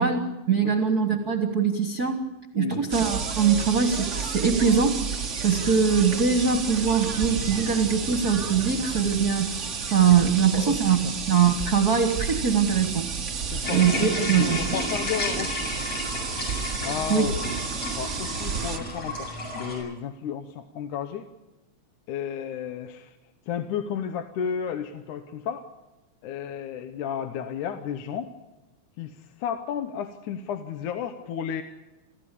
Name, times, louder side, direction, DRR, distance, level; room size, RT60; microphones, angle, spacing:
voice 1, 0.0-2.2 2.5-5.0 5.4-9.6 9.9-13.1 13.7-14.6 17.1-17.3, right 6 dB, 40° right, 4 dB, 1.6 m, -22 dB
sound 1, 2.9-18.8, right 5 dB, 70° right, 0.7 m, -31 dB
voice 2, 13.5-13.9 14.2-15.7 16.8-17.3 17.9-21.3 22.1-23.2 23.5-25.7 26.2-28.3 29.0-31.6, left 8 dB, 85° left, 8 dB, 2.5 m, -32 dB
sound 2, 13.6-19.8, left 1 dB, 55° left, 8.7 m, -32 dB
28.5 x 14.5 x 8.4 m, 1.0 s
omnidirectional pair, 3.4 m